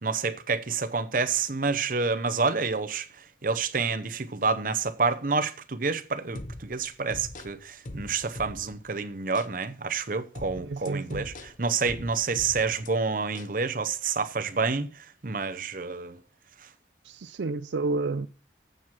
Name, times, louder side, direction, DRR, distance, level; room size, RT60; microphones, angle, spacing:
voice 1, 0.0-3.1 3.4-16.2, right 4 dB, 50° right, 0.8 m, -28 dB
sound 1, 6.4-8.9 9.4-9.5 10.4-12.9 13.4-13.6, left 1 dB, 45° left, 0.9 m, -41 dB
voice 2, 10.6-11.3 17.0-18.3, right 3 dB, 80° right, 0.5 m, -30 dB
7.9 x 7.5 x 5.9 m
head